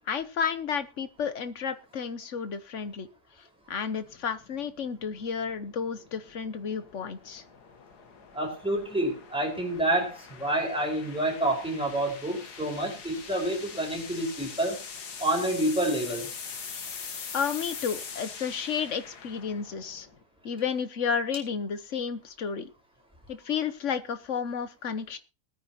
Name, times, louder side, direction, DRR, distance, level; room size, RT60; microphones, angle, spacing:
voice 1, 0.1-3.1 3.7-7.4 17.3-20.1 20.4-22.7 23.3-25.2, left 6 dB, 55° left, 12 dB, 1.3 m, -32 dB
sound 1, 4.0-20.2, left 5 dB, 85° left, 2.1 m, -43 dB
voice 2, 8.3-14.8 15.2-16.3, right 1 dB, 5° right, -1 dB, 5.0 m, -28 dB
21.0 x 9.4 x 3.0 m, 0.29 s
omnidirectional pair, 1.7 m